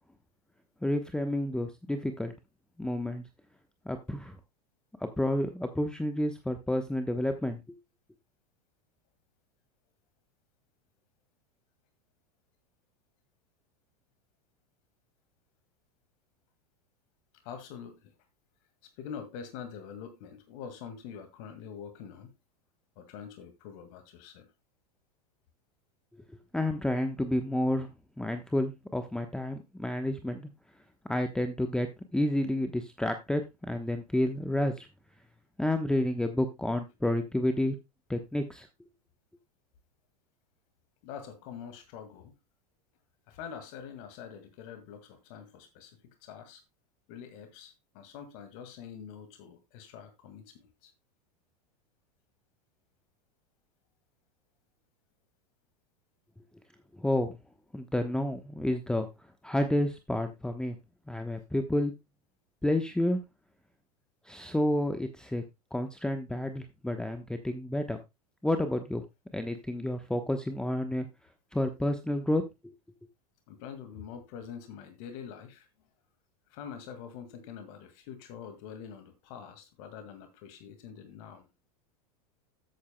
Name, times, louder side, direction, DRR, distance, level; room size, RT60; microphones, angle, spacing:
voice 1, 0.8-2.3 2.8-3.2 3.8-4.4 5.0-7.6 26.5-27.9 28.2-30.5 31.1-34.9 35.6-37.8 38.1-38.7 57.0-57.4 57.7-59.1 59.4-60.8 61.1-61.9 62.6-63.2 64.2-65.4 65.7-68.0 68.4-69.0 69.3-71.1 71.5-72.5, left 1 dB, 5° left, 1.0 m, -30 dB
voice 2, 17.4-18.1 18.8-22.3 23.0-24.5 37.0-37.2 41.0-42.3 43.3-46.6 47.1-50.9 73.5-75.7 76.5-81.5, left 7 dB, 55° left, 2.0 m, -45 dB
13.0 x 8.6 x 2.2 m
hypercardioid pair, 90°, 20 cm